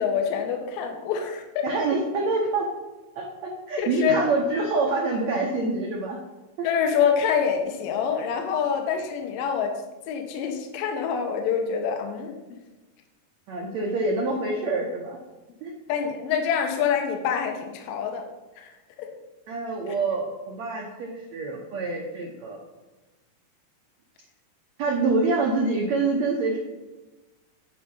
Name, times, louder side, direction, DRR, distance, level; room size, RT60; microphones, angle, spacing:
voice 1, 0.0-1.6 3.8-4.3 6.6-9.7 10.1-12.4 15.9-18.3 18.6-18.7 19.0-19.1 19.9-20.0, left 7 dB, 70° left, 4 dB, 2.4 m, -26 dB
voice 2, 1.6-2.7 3.1-3.2 3.7-6.2 6.6-6.7 13.5-15.2 15.6-15.7 19.5-22.6 24.8-26.6, right 3 dB, 75° right, 0 dB, 1.6 m, -26 dB
11.5 x 4.9 x 5.4 m, 1.1 s
omnidirectional pair, 4.6 m